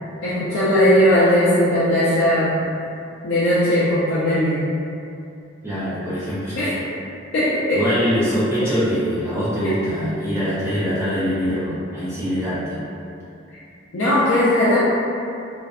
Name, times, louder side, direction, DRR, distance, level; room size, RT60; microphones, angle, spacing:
voice 1, 0.2-2.5 3.2-4.6 6.6-6.8 7.3-7.9 9.6-9.7 13.9-14.8, left 1 dB, 70° left, -10 dB, 0.4 m, -18 dB
voice 2, 5.6-6.6 7.7-12.8, equal, 15° right, -12 dB, 0.6 m, -23 dB
2.5 x 2.2 x 2.3 m, 2.6 s
head